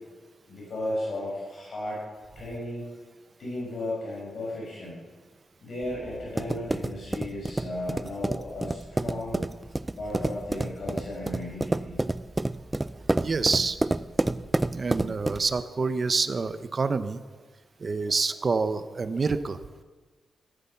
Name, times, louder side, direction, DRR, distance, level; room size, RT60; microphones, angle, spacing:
voice 1, 0.5-2.0 2.3-2.9 3.4-5.0 5.6-9.4 10.0-11.9, left 1 dB, 60° left, -5 dB, 6.3 m, -35 dB
sound 1, 5.8-15.6, right 2 dB, 15° right, 0.4 m, -29 dB
voice 2, 13.2-13.8 14.7-17.2 17.8-19.6, right 4 dB, 40° right, 12 dB, 0.9 m, -27 dB
16.0 x 14.0 x 5.8 m, 1.4 s
wide cardioid pair, 120°, 0 cm